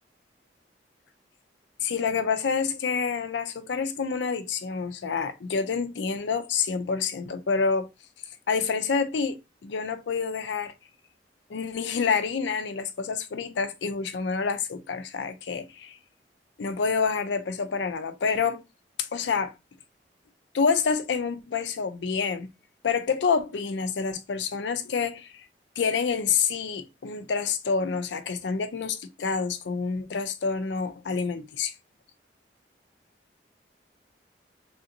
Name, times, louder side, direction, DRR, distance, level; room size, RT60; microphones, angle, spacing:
voice 1, 1.8-7.9 8.5-10.7 11.5-16.0 16.6-18.6 19.1-19.5 20.5-22.5 22.8-25.3 25.8-31.7, left 5 dB, 85° left, 0.5 m, -28 dB
3.3 x 2.6 x 2.7 m
head